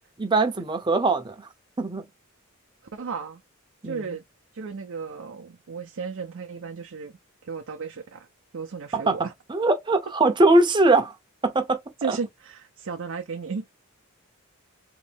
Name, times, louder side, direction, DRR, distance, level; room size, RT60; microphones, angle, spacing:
voice 1, 0.2-1.5 1.8-2.0 3.8-4.2 8.9-9.2 9.5-11.2 11.4-11.8 12.0-12.2, right 2 dB, 20° right, 0.7 m, -21 dB
voice 2, 2.9-3.4 3.8-4.2 4.5-8.3 8.5-9.3 12.0-13.7, right 5 dB, 65° right, 0.5 m, -34 dB
3.1 x 2.8 x 3.4 m
head